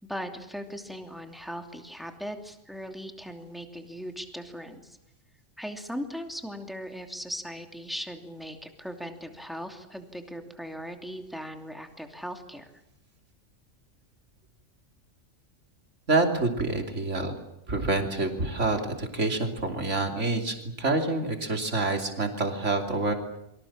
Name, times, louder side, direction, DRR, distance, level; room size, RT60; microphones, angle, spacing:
voice 1, 0.0-5.0 5.6-12.7, equal, ahead, 4 dB, 2.7 m, -38 dB
voice 2, 16.1-17.4 17.7-23.1, right 3 dB, 70° right, 4 dB, 3.3 m, -27 dB
28.5 x 24.5 x 7.4 m, 0.86 s
omnidirectional pair, 1.3 m